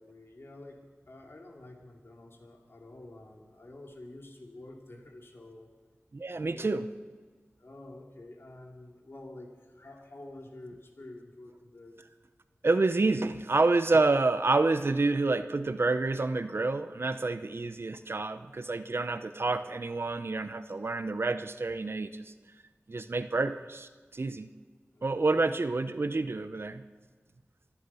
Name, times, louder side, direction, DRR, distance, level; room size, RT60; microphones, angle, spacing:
voice 1, 0.0-5.7 6.3-6.7 7.6-12.0 23.0-23.3 24.9-25.5, left 2 dB, 60° left, 1 dB, 2.6 m, -49 dB
voice 2, 6.1-6.8 12.6-22.3 22.9-24.5 25.0-26.8, right 3 dB, 60° right, 11 dB, 0.8 m, -28 dB
25.0 x 10.0 x 5.7 m, 1.5 s
wide cardioid pair, 65°, 5 cm